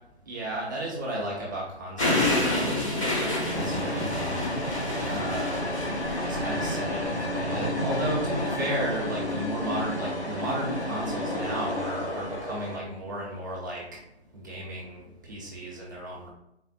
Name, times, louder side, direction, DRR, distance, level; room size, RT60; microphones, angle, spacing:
voice 1, 0.3-4.4 5.1-5.6 5.9-13.8 14.3-15.0 15.3-16.3, right 1 dB, 20° right, -5 dB, 0.7 m, -34 dB
sound 1, 2.0-7.0, left 1 dB, 30° left, 0.9 m, -29 dB
sound 2, 3.5-12.8, left 1 dB, 80° left, 1.4 m, -31 dB
4.1 x 2.0 x 4.2 m, 0.82 s
figure-of-eight pair, 160°, 33 cm